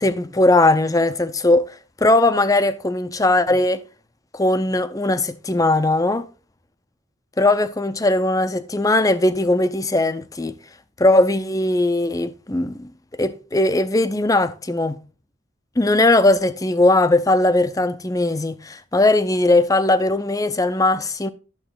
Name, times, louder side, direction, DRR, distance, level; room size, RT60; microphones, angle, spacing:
voice 1, 0.0-1.7 2.0-3.8 4.3-6.3 7.4-10.6 11.0-12.9 13.2-15.0 15.8-21.3, left 2 dB, 15° left, 0.6 m, -19 dB
11.5 x 6.9 x 3.8 m
head